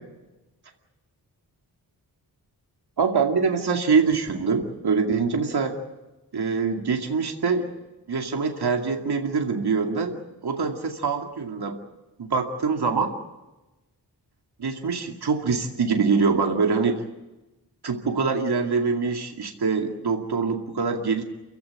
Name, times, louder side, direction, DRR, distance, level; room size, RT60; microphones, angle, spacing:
voice 1, 3.0-5.8 6.3-7.7 8.1-11.8 12.2-13.1 14.6-17.0 17.8-21.2, right 5 dB, 70° right, 3 dB, 2.5 m, -24 dB
29.0 x 16.0 x 8.9 m, 1.0 s
wide cardioid pair, 115°, 40 cm